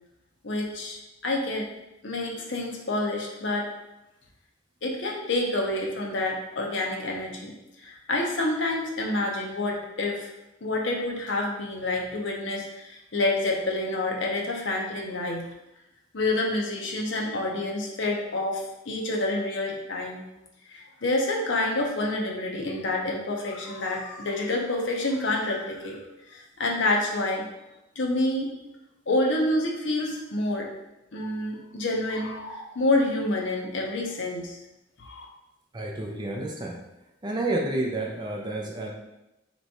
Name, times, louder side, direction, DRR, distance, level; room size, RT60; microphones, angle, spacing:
voice 1, 0.4-1.7 2.0-3.7 4.8-7.5 7.8-10.3 10.6-15.5 16.1-20.2 20.7-26.0 26.3-27.5 28.0-28.5 29.1-30.7 31.1-34.6 35.0-35.3, left 2 dB, 70° left, 0 dB, 0.7 m, -28 dB
voice 2, 35.7-36.8 37.2-38.9, right 2 dB, 20° right, 0 dB, 0.5 m, -30 dB
3.4 x 3.1 x 4.1 m, 0.92 s
head